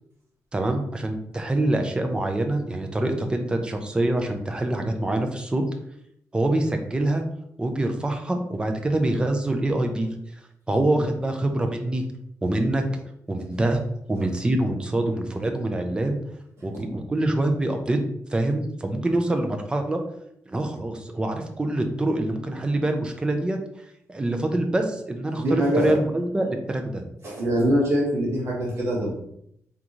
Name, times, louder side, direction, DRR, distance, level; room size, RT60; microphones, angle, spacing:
voice 1, 0.5-5.6 6.3-7.2 7.6-10.1 10.7-12.0 12.4-12.8 13.3-13.8 14.1-16.2 16.6-18.0 18.3-20.0 20.5-23.6 24.1-27.0, right 1 dB, 15° right, 4 dB, 0.5 m, -25 dB
voice 2, 25.4-25.9 27.2-29.1, equal, 50° right, -4 dB, 1.5 m, -23 dB
3.8 x 3.7 x 3.0 m, 0.74 s
wide cardioid pair, 160°, 6 cm